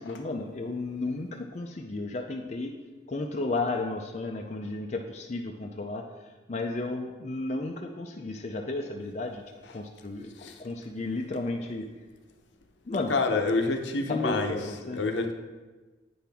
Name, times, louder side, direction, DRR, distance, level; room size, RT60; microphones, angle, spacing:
voice 1, 0.0-2.7 3.1-6.0 6.5-9.4 9.7-10.3 10.6-11.9 12.9-13.2 14.1-15.0, left 2 dB, 35° left, 2 dB, 0.4 m, -33 dB
voice 2, 13.1-14.6 14.9-15.3, left 3 dB, 70° left, 5 dB, 0.7 m, -27 dB
8.5 x 5.8 x 3.5 m, 1.2 s
head